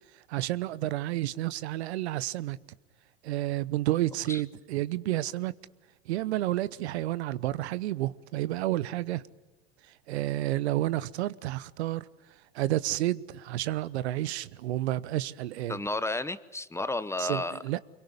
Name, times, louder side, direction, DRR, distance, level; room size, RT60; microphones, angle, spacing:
voice 1, 0.1-2.6 3.2-5.5 6.1-9.3 10.1-12.1 12.5-15.8 17.2-17.8, right 15 dB, 75° right, 0.9 m, -30 dB
voice 2, 15.7-17.6, left 2 dB, 10° left, 0.9 m, -32 dB
25.5 x 23.0 x 9.6 m
hypercardioid pair, 100°, 33 cm